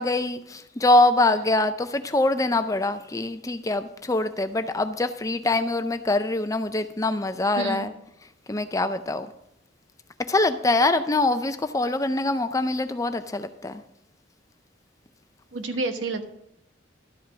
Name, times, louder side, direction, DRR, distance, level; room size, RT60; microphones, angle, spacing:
voice 1, 0.0-7.9 8.5-9.3 10.3-13.8, left 2 dB, 15° left, 10 dB, 0.4 m, -24 dB
voice 2, 7.6-7.9 15.5-16.3, right 3 dB, 80° right, 7 dB, 1.1 m, -29 dB
12.0 x 5.2 x 6.0 m, 0.83 s
head